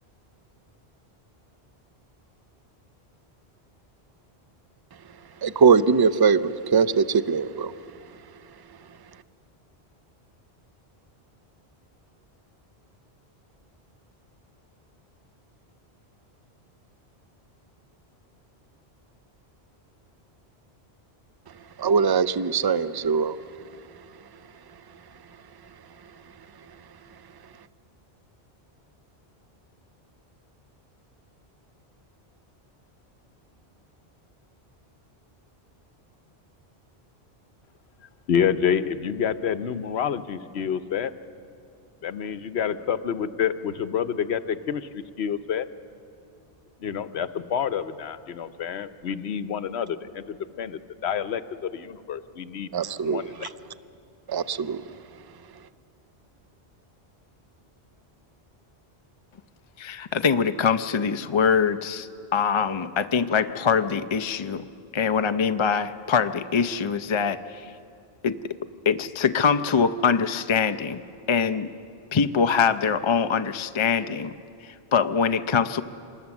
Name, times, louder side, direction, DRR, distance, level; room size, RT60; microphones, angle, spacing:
voice 1, 5.4-7.7 21.8-23.4 52.7-53.5 54.3-54.8, right 5 dB, 35° right, 14 dB, 0.4 m, -21 dB
voice 2, 38.3-41.1 42.0-45.7 46.8-52.7 53.0-53.5, left 8 dB, 85° left, 12 dB, 1.0 m, -28 dB
voice 3, 59.8-64.6 64.9-67.7 68.2-68.4 68.9-71.0 71.3-71.7 72.1-74.3 74.6-75.8, left 6 dB, 35° left, 10 dB, 0.5 m, -23 dB
26.0 x 20.0 x 7.2 m, 2.4 s
omnidirectional pair, 1.1 m